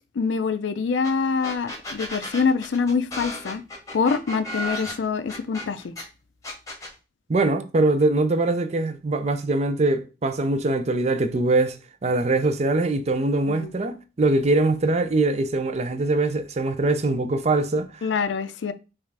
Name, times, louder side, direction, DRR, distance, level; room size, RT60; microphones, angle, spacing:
voice 1, 0.2-3.6 3.9-5.9 13.5-13.7 18.0-18.7, left 5 dB, 85° left, 0.4 m, -25 dB
sound 1, 1.0-1.1 1.4-6.0 6.4-6.9, left 1 dB, 20° left, 1.0 m, -34 dB
voice 2, 7.3-11.8 12.0-18.1, right 2 dB, 35° right, 0.4 m, -22 dB
5.5 x 2.5 x 3.3 m
head